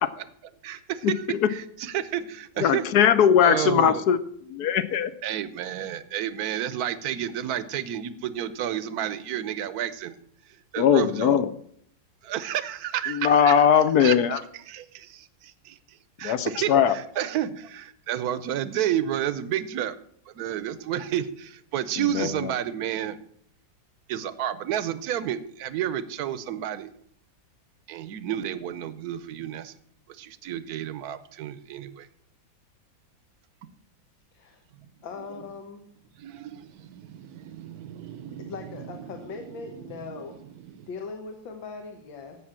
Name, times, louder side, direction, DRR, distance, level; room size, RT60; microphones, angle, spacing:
voice 1, 0.6-2.9 3.4-4.0 5.2-10.2 10.4-11.4 12.2-20.0 20.3-23.2 24.1-26.9 27.9-29.7 30.1-32.1 33.6-33.7 36.1-40.9, right 10 dB, 65° right, 15 dB, 1.1 m, -31 dB
voice 2, 2.6-4.2 4.5-5.1 10.8-11.5 13.1-14.4 16.2-16.9 22.1-22.3, left 8 dB, 65° left, 14 dB, 1.1 m, -20 dB
voice 3, 35.0-35.9 38.4-40.4 40.9-42.4, left 4 dB, 80° left, 4 dB, 2.0 m, -39 dB
15.5 x 6.0 x 7.4 m, 0.67 s
omnidirectional pair, 2.1 m